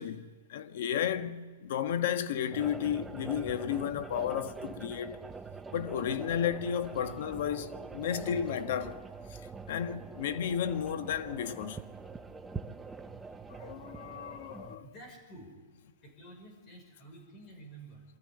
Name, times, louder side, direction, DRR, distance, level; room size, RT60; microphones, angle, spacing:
voice 1, 0.0-5.2 5.7-9.0 9.7-11.8 13.5-14.8, left 9 dB, 60° left, 1.4 m, -33 dB
sound 1, 2.5-14.8, right 4 dB, 10° right, 0.7 m, -44 dB
voice 2, 14.8-15.5 16.0-18.0, right 2 dB, 25° left, 5.6 m, -50 dB
24.0 x 13.5 x 9.8 m
hypercardioid pair, 155°, 0 cm